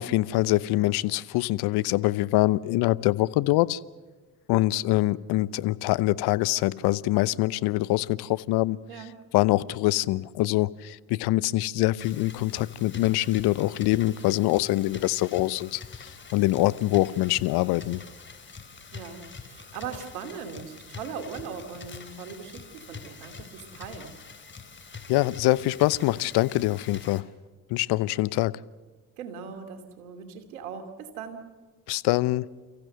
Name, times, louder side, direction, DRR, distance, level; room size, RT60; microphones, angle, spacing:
voice 1, 0.0-3.8 4.5-8.8 9.3-18.0 25.1-27.3 27.7-28.6 31.9-32.5, left 18 dB, 60° left, 18 dB, 0.9 m, -24 dB
sound 1, 12.0-27.2, left 5 dB, 25° left, 3.1 m, -45 dB
voice 2, 18.9-24.2 29.2-31.5, right 6 dB, 80° right, 7 dB, 2.9 m, -39 dB
29.5 x 15.5 x 7.9 m, 1.4 s
hypercardioid pair, 65°, 44 cm